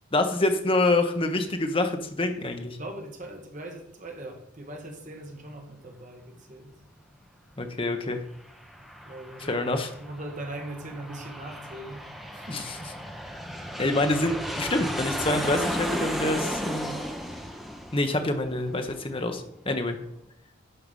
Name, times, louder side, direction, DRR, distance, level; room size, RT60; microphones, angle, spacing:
voice 1, 0.1-2.8 7.6-8.2 9.4-9.9 12.5-12.8 13.8-16.9 17.9-20.0, left 2 dB, 25° left, 6 dB, 0.9 m, -26 dB
voice 2, 2.8-6.7 9.0-9.5 10.0-12.0 12.3-12.9 13.7-13.9, right 1 dB, 40° right, 2 dB, 1.7 m, -40 dB
Aircraft, 8.2-19.4, equal, ahead, 0.8 m, -35 dB
11.5 x 4.8 x 5.4 m, 0.76 s
head